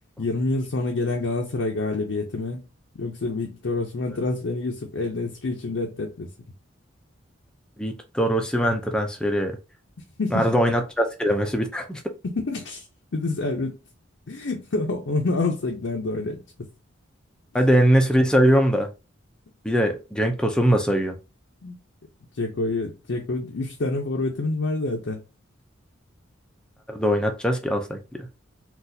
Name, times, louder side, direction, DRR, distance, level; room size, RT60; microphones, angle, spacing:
voice 1, 0.2-2.6 2.9-6.3 10.2-10.5 12.2-12.9 13.1-13.7 14.3-16.7 21.6-21.8 22.4-25.2, left 3 dB, 65° left, 0.6 m, -27 dB
voice 2, 7.8-9.5 10.3-12.0 17.5-18.9 19.6-21.2 26.9-28.3, equal, 5° left, 0.5 m, -21 dB
4.0 x 2.3 x 2.6 m
head